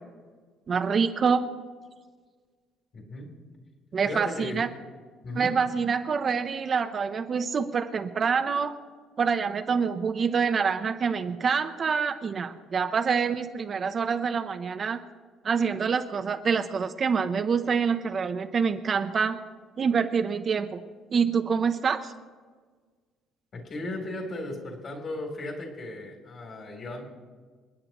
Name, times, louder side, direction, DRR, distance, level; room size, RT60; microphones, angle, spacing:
voice 1, 0.7-1.4 3.9-4.7 5.3-8.7 9.2-15.0 15.4-19.4 19.8-20.8 21.1-22.1, right 6 dB, 30° right, 7 dB, 0.7 m, -26 dB
voice 2, 2.9-3.3 4.0-4.6 5.2-5.5 23.5-27.1, left 1 dB, 40° left, 1 dB, 3.3 m, -36 dB
29.0 x 9.7 x 3.0 m, 1.5 s
cardioid pair, 150°, 0 cm